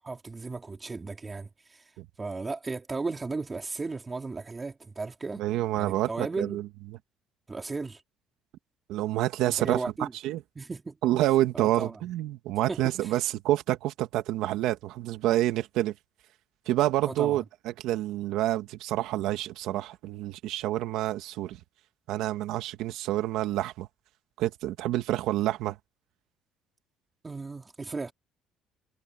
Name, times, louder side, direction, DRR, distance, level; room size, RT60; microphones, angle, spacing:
voice 1, 0.0-1.9 2.2-5.4 5.7-6.6 7.5-8.0 9.6-10.1 10.6-11.0 11.5-12.0 12.7-13.1 17.0-17.4 27.2-28.1, right 3 dB, 20° right, 3.7 m, -35 dB
voice 2, 5.4-6.7 8.9-10.4 11.0-15.9 16.7-21.6 22.1-23.9 24.4-25.8, right 14 dB, 75° right, 2.1 m, -28 dB
cardioid pair, 135°, 0 cm